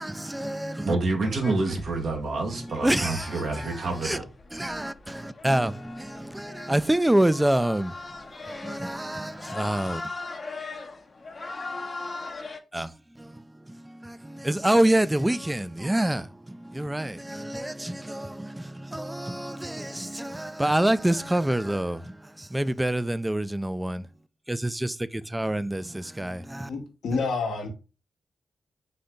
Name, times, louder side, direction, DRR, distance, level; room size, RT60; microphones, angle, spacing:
voice 1, 0.0-0.9 2.5-4.2 4.5-10.0 12.7-24.1 24.5-26.7, right 1 dB, 15° right, 0.4 m, -27 dB
voice 2, 0.8-4.3, right 3 dB, 70° right, 1.1 m, -28 dB
sound 1, 1.2-12.6, left 3 dB, 50° left, 0.7 m, -40 dB
voice 3, 26.7-27.7, left 4 dB, 80° left, 0.9 m, -28 dB
3.9 x 2.7 x 3.5 m
supercardioid pair, 40°, 0 cm